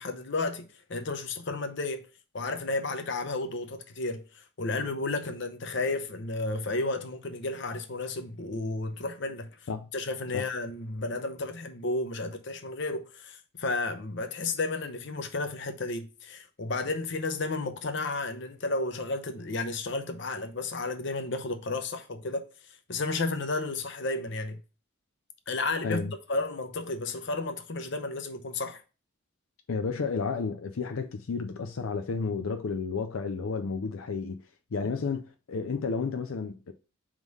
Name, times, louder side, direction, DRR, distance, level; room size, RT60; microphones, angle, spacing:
voice 1, 0.0-2.1 2.3-9.6 9.9-22.5 22.9-24.6 25.5-28.8, left 3 dB, 60° left, 0.7 m, -32 dB
voice 2, 29.7-34.4 34.7-36.7, left 4 dB, 85° left, 0.5 m, -32 dB
4.7 x 3.8 x 5.3 m
head